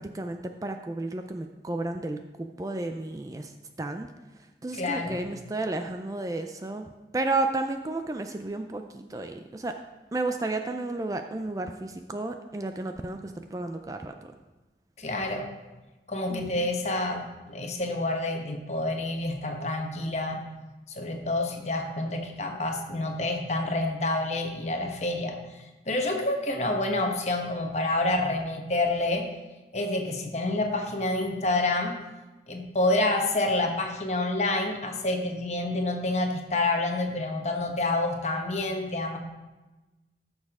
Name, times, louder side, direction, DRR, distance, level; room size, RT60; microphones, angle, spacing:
voice 1, 0.0-3.5 3.8-4.1 4.6-6.9 7.1-9.7 10.1-14.1 16.3-16.6, right 2 dB, 20° right, 6 dB, 0.4 m, -32 dB
voice 2, 4.7-5.2 15.0-15.5 16.1-20.4 20.9-25.4 25.9-29.3 29.7-32.0 32.5-39.2, left 2 dB, 40° left, 3 dB, 1.1 m, -28 dB
14.0 x 6.5 x 3.6 m, 1.1 s
head